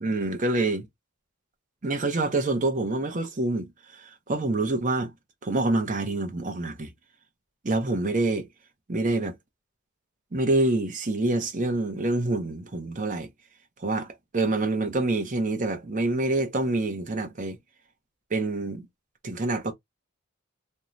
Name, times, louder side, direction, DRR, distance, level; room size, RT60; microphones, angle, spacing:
voice 1, 0.0-0.8 1.8-5.1 5.4-6.9 7.6-8.5 8.9-9.4 10.3-13.3 13.8-17.6 18.3-18.9 19.2-19.7, right 2 dB, 35° right, 0.6 m, -26 dB
2.5 x 2.2 x 3.0 m
head